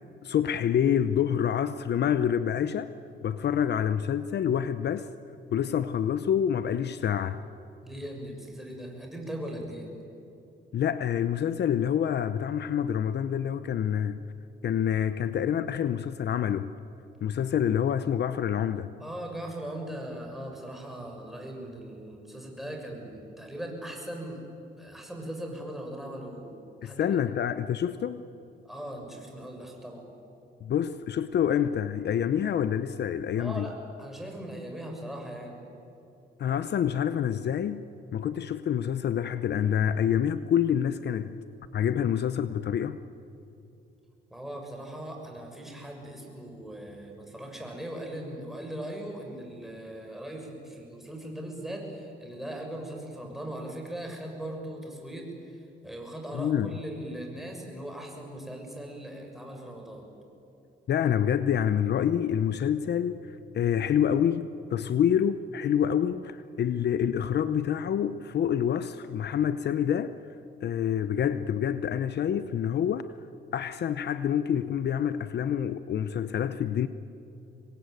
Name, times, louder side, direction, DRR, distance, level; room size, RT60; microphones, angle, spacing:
voice 1, 0.2-2.9 3.2-5.1 5.5-7.4 10.7-14.2 14.6-16.7 17.2-18.9 26.8-28.3 30.6-33.7 36.4-37.9 38.1-41.4 41.7-43.0 56.3-56.7 60.9-70.1 70.6-73.1 73.5-76.9, left 9 dB, 60° left, 0.8 m, -27 dB
voice 2, 7.8-9.9 19.0-24.4 24.8-27.2 28.6-30.1 33.4-35.6 44.3-60.1, right 1 dB, ahead, 6.6 m, -39 dB
26.0 x 21.5 x 9.3 m
cardioid pair, 90°, 20 cm